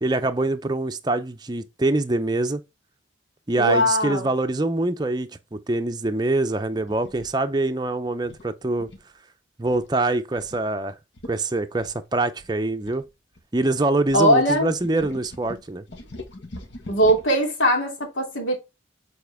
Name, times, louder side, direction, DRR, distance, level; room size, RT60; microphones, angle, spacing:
voice 1, 0.0-2.6 3.5-8.9 9.6-11.0 11.3-13.0 13.5-15.8, right 2 dB, 20° right, 0.5 m, -24 dB
voice 2, 3.6-4.3 14.1-14.7 16.9-18.5, equal, 90° left, 2.7 m, -20 dB
sound 1, 6.7-7.3 8.2-9.1 9.7-9.9 10.4-10.6 10.9-11.0 11.2-11.4 11.8-13.6 14.1-17.4, left 1 dB, 70° left, 1.5 m, -42 dB
7.2 x 4.3 x 3.3 m
head